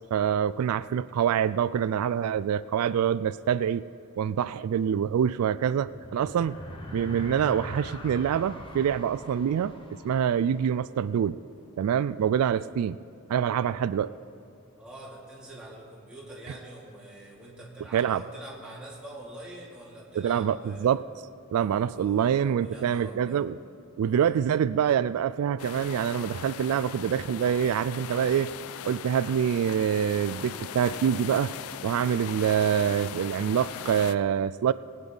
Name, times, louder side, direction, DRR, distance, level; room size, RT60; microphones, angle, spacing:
voice 1, 0.1-3.9 4.2-6.6 6.9-9.7 10.0-11.4 11.8-13.0 13.3-14.1 17.9-18.2 20.2-21.0 21.5-23.6 24.0-28.5 28.8-31.5 31.8-34.7, right 8 dB, 90° right, 16 dB, 0.3 m, -25 dB
sound 1, 5.6-11.2, left 1 dB, 25° left, 1.0 m, -43 dB
voice 2, 14.8-21.0 21.9-23.4, right 1 dB, 5° right, -7 dB, 2.6 m, -45 dB
sound 2, 25.6-34.1, left 9 dB, 75° left, 0.4 m, -39 dB
20.0 x 9.0 x 3.9 m, 2.8 s
head